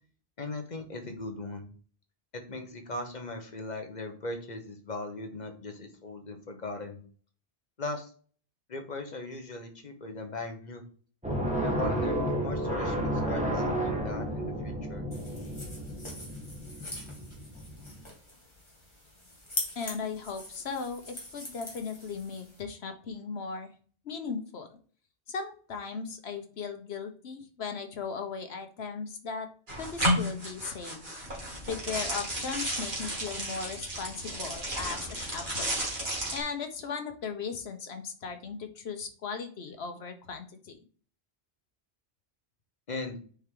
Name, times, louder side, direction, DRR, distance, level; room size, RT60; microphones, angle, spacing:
voice 1, 0.4-1.7 2.3-7.0 7.8-8.1 8.7-10.8 11.6-15.1 42.9-43.2, left 2 dB, 45° left, 4 dB, 1.2 m, -39 dB
sound 1, 11.2-18.0, right 1 dB, 5° right, 1.4 m, -32 dB
sound 2, 15.1-22.6, left 1 dB, 25° left, 2.0 m, -42 dB
voice 2, 19.8-23.7 24.0-24.7 25.3-29.5 29.8-31.0 31.7-35.8 36.3-40.8, left 5 dB, 75° left, 6 dB, 1.2 m, -37 dB
sound 3, 29.7-36.4, equal, 50° right, 2.2 m, -33 dB
7.0 x 4.6 x 3.7 m, 0.44 s
omnidirectional pair, 1.1 m